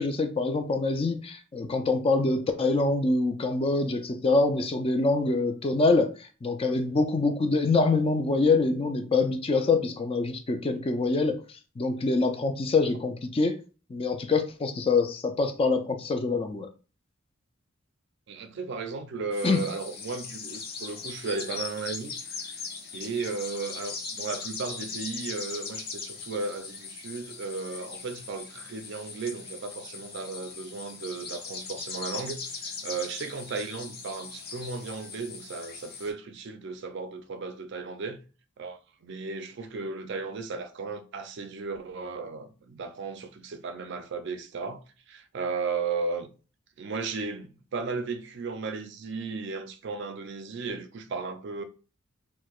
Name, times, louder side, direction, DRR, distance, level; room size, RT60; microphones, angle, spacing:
voice 1, 0.0-13.6 13.9-16.7 19.4-19.6, left 3 dB, 25° left, 0.4 m, -25 dB
voice 2, 18.3-22.2 22.9-38.2 38.6-46.3 46.8-51.6, right 4 dB, 60° right, 0.4 m, -35 dB
sound 1, 19.3-36.1, left 5 dB, 50° left, 0.8 m, -40 dB
4.4 x 2.1 x 2.3 m
head